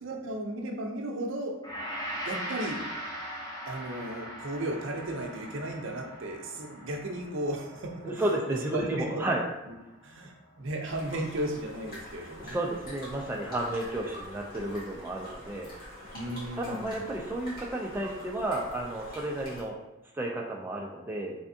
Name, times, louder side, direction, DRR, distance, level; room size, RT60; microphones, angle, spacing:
voice 1, 0.0-1.6 2.3-2.8 3.7-9.2 9.7-9.8 10.0-12.6 16.1-17.1, right 1 dB, 65° right, 2 dB, 0.6 m, -35 dB
Gong, 1.6-10.1 10.4-10.6, equal, 20° left, 0.7 m, -41 dB
voice 2, 8.0-9.4 12.4-15.7 16.6-19.8 20.1-21.4, right 1 dB, 10° right, -1 dB, 0.3 m, -32 dB
sound 1, 10.8-19.6, equal, 45° left, 1.3 m, -45 dB
3.4 x 3.3 x 2.7 m, 0.97 s
head